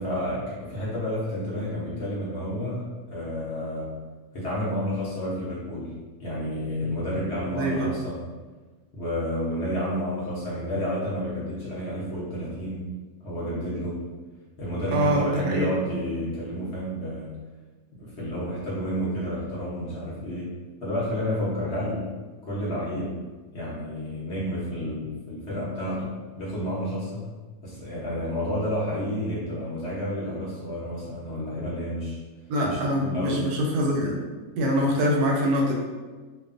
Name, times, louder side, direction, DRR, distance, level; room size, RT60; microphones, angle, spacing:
voice 1, 0.0-2.8 3.1-4.0 4.3-8.2 8.9-12.9 13.2-14.0 14.6-17.3 17.9-20.5 20.8-22.1 22.4-23.2 23.5-27.2 27.6-32.2 32.6-33.4, equal, 55° left, -7 dB, 0.8 m, -30 dB
voice 2, 7.4-7.9 14.9-15.7 32.5-34.2 34.6-35.7, equal, 90° right, -1 dB, 1.1 m, -24 dB
2.6 x 2.3 x 2.4 m, 1.3 s
omnidirectional pair, 1.6 m